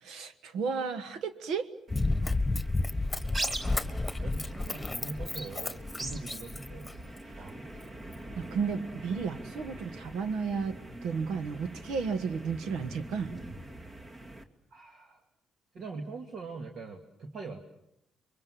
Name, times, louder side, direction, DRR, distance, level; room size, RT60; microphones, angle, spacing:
voice 1, 0.0-1.7 7.3-7.4 8.4-13.4, right 5 dB, 85° right, 10 dB, 1.4 m, -33 dB
Run, 1.9-7.2 7.8-7.9, left 2 dB, 10° left, 1.7 m, -31 dB
sound 1, 1.9-14.4, right 1 dB, 40° right, 2.5 m, -43 dB
voice 2, 3.6-3.9 4.2-6.9 7.4-7.9 14.7-15.2 15.7-17.6, right 3 dB, 60° right, 3 dB, 2.3 m, -43 dB
28.0 x 24.0 x 7.6 m, 0.80 s
cardioid pair, 90°, 0 cm